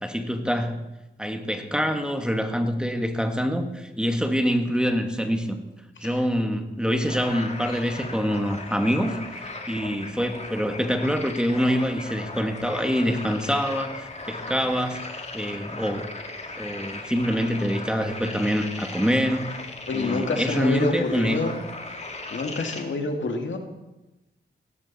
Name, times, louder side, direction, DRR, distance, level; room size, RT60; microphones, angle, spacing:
voice 1, 0.0-0.8 1.2-5.6 6.0-16.1 16.6-19.5 19.9-21.4, equal, 5° right, 5 dB, 1.8 m, -25 dB
sound 1, 7.1-22.8, left 2 dB, 35° left, 2.3 m, -37 dB
voice 2, 19.9-21.6 21.9-22.0 22.3-23.6, left 3 dB, 65° left, 3 dB, 2.3 m, -28 dB
17.5 x 13.5 x 4.3 m, 0.99 s
cardioid pair, 65°, 21 cm